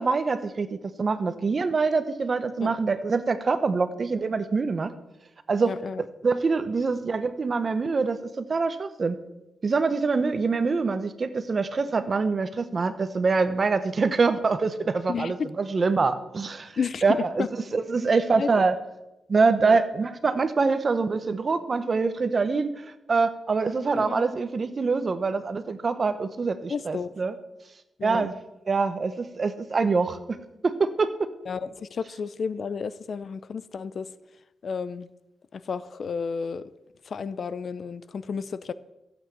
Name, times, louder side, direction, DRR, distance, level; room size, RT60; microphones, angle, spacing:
voice 1, 0.0-4.9 5.5-5.7 6.2-9.2 9.6-17.4 17.7-18.8 19.3-22.7 23.1-27.3 28.0-28.3 28.7-30.2 30.6-31.3, right 4 dB, 40° right, 11 dB, 1.0 m, -25 dB
voice 2, 5.6-6.0 15.1-15.5 16.8-17.5 18.4-18.6 19.7-19.8 23.9-24.2 26.7-27.1 28.0-28.3 31.5-34.1 34.6-35.1 35.5-36.6 37.1-38.7, left 5 dB, 55° left, 16 dB, 0.5 m, -32 dB
14.5 x 8.2 x 7.0 m, 0.95 s
wide cardioid pair, 115°, 0 cm